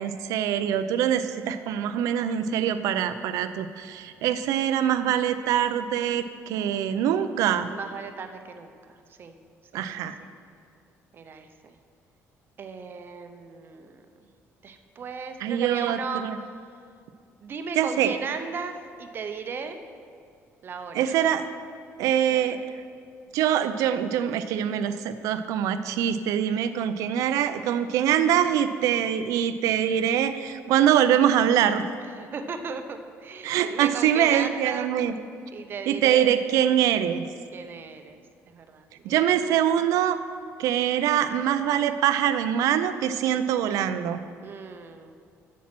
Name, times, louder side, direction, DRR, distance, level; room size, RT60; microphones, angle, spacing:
voice 1, 0.0-7.7 9.7-10.1 15.4-16.4 17.8-18.2 20.9-21.5 22.0-22.6 23.3-31.8 33.4-35.1 35.9-37.2 39.0-40.2 40.6-44.2, right 10 dB, 85° right, 11 dB, 0.5 m, -24 dB
voice 2, 7.7-9.3 9.7-9.8 11.1-11.7 12.6-14.0 14.6-16.3 17.4-19.8 20.6-21.3 22.3-22.6 32.2-34.9 35.5-36.3 37.5-38.2 38.5-39.4 44.4-45.2, right 5 dB, 40° right, 7 dB, 0.7 m, -36 dB
8.6 x 7.2 x 6.0 m, 2.2 s
cardioid pair, 135°, 6 cm